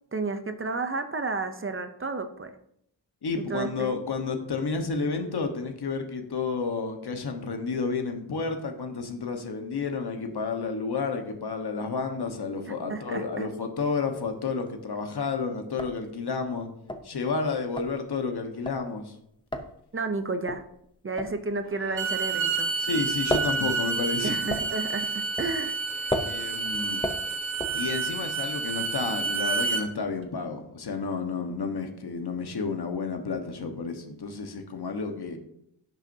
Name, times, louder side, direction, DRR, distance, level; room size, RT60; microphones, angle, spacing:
voice 1, 0.1-2.5 3.5-4.0 12.9-13.5 19.9-20.6 21.0-22.7 24.2-25.8, right 3 dB, 30° right, 8 dB, 0.6 m, -31 dB
voice 2, 3.2-16.7 17.0-19.1 22.8-24.4 26.2-27.0 27.7-35.4, left 4 dB, 60° left, 5 dB, 1.3 m, -31 dB
sound 1, 14.4-14.9 15.3-15.4 15.6-22.7 23.0-28.3, left 1 dB, 10° left, 0.6 m, -35 dB
Bowed string instrument, 21.8-29.9, right 4 dB, 90° right, 1.3 m, -29 dB
16.0 x 6.2 x 2.7 m, 0.73 s
wide cardioid pair, 175°, 44 cm